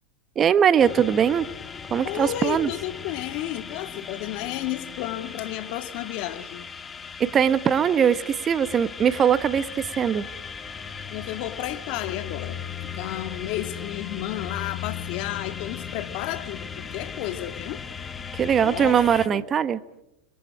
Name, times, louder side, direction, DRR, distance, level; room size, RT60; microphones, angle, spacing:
voice 1, 0.3-1.5 1.9-2.7 7.2-10.3 18.3-19.8, right 8 dB, 30° right, 1.4 m, -21 dB
sound 1, 0.8-19.3, left 7 dB, 20° left, 1.9 m, -37 dB
voice 2, 2.0-6.7 11.1-17.8 18.6-19.0 19.3-19.5, left 14 dB, 55° left, 1.9 m, -32 dB
29.5 x 22.5 x 4.9 m
hypercardioid pair, 105°, 0 cm